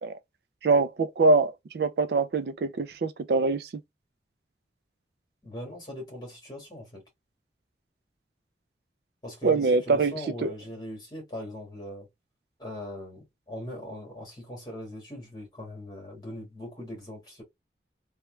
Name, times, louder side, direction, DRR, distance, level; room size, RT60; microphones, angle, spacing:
voice 1, 0.6-3.7 9.4-10.1 10.4-10.5, right 3 dB, 65° right, 0.4 m, -24 dB
voice 2, 5.4-7.0 9.2-12.1 12.6-17.4, left 1 dB, 25° left, 1.7 m, -40 dB
3.1 x 2.3 x 3.1 m
head